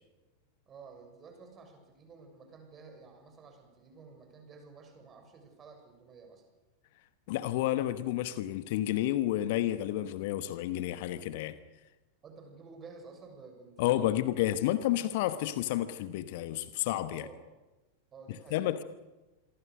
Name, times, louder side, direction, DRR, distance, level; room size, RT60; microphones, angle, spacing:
voice 1, 0.7-6.5 12.2-14.5 17.1-17.5 18.1-18.9, right 4 dB, 25° right, 5 dB, 7.0 m, -52 dB
voice 2, 7.3-11.6 13.8-17.3 18.5-18.8, left 14 dB, 50° left, 13 dB, 1.3 m, -30 dB
27.5 x 24.0 x 6.6 m, 1.1 s
figure-of-eight pair, 90°, 0 cm